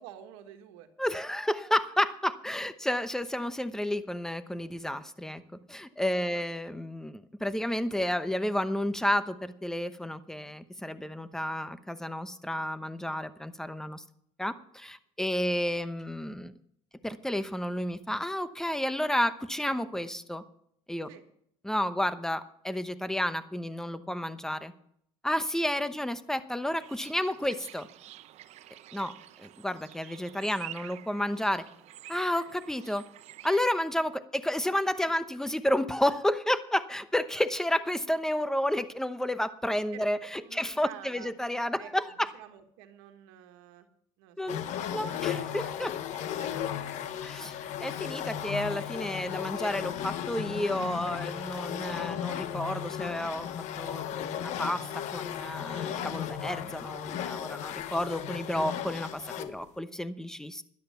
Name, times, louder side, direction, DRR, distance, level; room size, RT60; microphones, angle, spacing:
voice 1, 0.0-0.9 6.1-6.5 21.1-21.2 26.0-26.1 39.9-40.0 40.3-41.3 41.8-43.9 44.2-45.2 45.8-46.0 46.3-47.5 48.9-50.1 57.2-57.5, right 11 dB, 90° right, 7 dB, 1.5 m, -51 dB
voice 2, 1.0-5.4 5.7-14.0 14.4-16.5 17.0-20.4 20.9-21.1 21.6-24.7 25.2-27.9 28.9-29.1 29.4-31.6 32.1-33.0 33.4-42.0 44.4-44.6 44.9-45.9 47.2-53.5 53.8-60.6, left 1 dB, 5° left, 12 dB, 0.9 m, -31 dB
sound 1, 26.8-33.8, right 13 dB, 60° right, 0.7 m, -48 dB
sound 2, 44.5-59.6, left 10 dB, 65° left, 1.1 m, -35 dB
12.5 x 11.0 x 5.8 m, 0.70 s
supercardioid pair, 100°, 13 cm